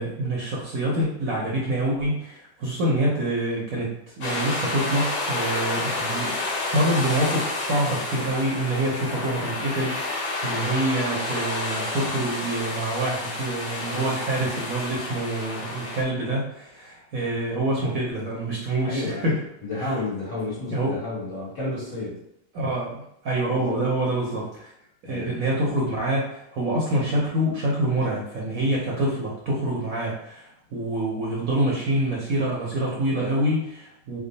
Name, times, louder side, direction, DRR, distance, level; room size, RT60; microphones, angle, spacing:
voice 1, 0.0-19.4 19.8-19.9 20.7-21.0 22.5-24.7 25.0-34.2, right 1 dB, 60° right, -4 dB, 0.9 m, -26 dB
sound 1, 4.2-16.0, left 2 dB, 80° left, 1.6 m, -30 dB
voice 2, 18.8-19.4 19.6-22.2 23.5-23.8 25.0-25.4, left 2 dB, 50° left, -7 dB, 1.8 m, -31 dB
3.6 x 2.0 x 3.9 m, 0.78 s
omnidirectional pair, 2.0 m